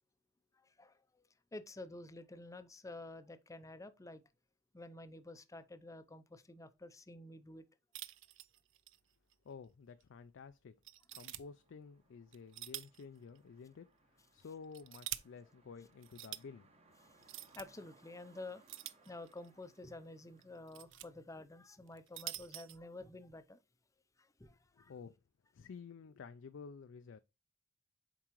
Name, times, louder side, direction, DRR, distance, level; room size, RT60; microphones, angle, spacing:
voice 1, 0.5-1.0 1.5-4.2 4.7-7.6 17.5-23.6 24.2-24.9, left 2 dB, 15° left, 0.5 m, -50 dB
sound 1, 7.9-9.0 9.3-9.4 10.0-10.1 10.9-11.4 12.3-13.0 13.4-13.5 14.4-15.2 16.0-16.4 17.2-17.7 18.7-19.5 20.4-21.1 21.9-22.8, right 14 dB, 65° right, 0.5 m, -46 dB
voice 2, 9.4-10.8 11.1-16.7 24.7-25.2 25.5-27.2, left 5 dB, 65° left, 0.4 m, -52 dB
sound 2, 11.3-21.5, right 2 dB, 30° right, 1.1 m, -69 dB
7.5 x 4.6 x 3.0 m
head